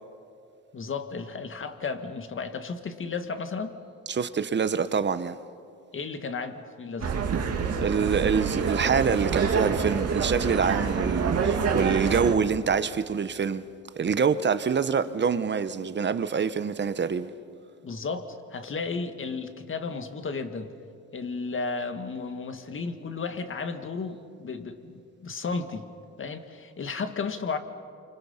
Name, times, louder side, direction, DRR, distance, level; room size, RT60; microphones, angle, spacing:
voice 1, 0.7-3.8 5.9-7.2 17.8-20.7 21.1-25.9 26.2-27.6, left 4 dB, 40° left, 2.0 m, -33 dB
voice 2, 4.1-5.4 7.8-13.6 14.0-17.3, right 6 dB, 35° right, 1.0 m, -26 dB
sound 1, 7.0-12.3, right 5 dB, 55° right, 2.5 m, -27 dB
28.5 x 25.5 x 5.8 m
cardioid pair, 90°, 30 cm